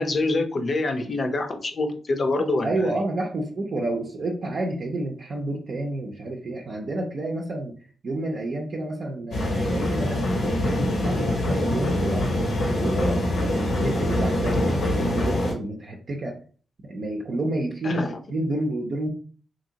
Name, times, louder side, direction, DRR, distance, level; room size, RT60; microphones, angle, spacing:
voice 1, 0.0-2.9 17.8-18.1, left 2 dB, 50° left, 6 dB, 0.6 m, -25 dB
voice 2, 2.6-7.7 8.0-12.2 12.7-13.2 13.8-16.3 16.8-19.1, right 2 dB, 60° right, -1 dB, 0.5 m, -29 dB
sound 1, 9.3-15.5, left 1 dB, 90° left, 1.1 m, -24 dB
2.9 x 2.6 x 2.8 m, 0.41 s
supercardioid pair, 45°, 0 cm